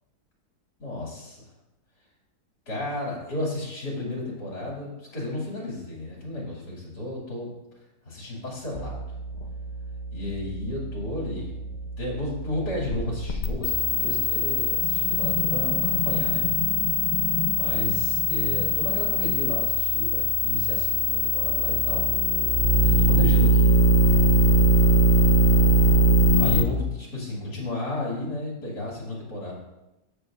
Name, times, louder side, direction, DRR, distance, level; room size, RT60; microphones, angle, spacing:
voice 1, 0.8-1.5 2.7-7.5 8.0-9.0 10.1-11.5 12.0-16.5 17.6-22.1 22.8-23.7 26.4-29.5, left 1 dB, 75° left, -4 dB, 3.1 m, -33 dB
sound 1, 8.8-26.6, equal, 45° left, 0.6 m, -22 dB
13.5 x 6.5 x 2.5 m, 0.95 s
omnidirectional pair, 1.7 m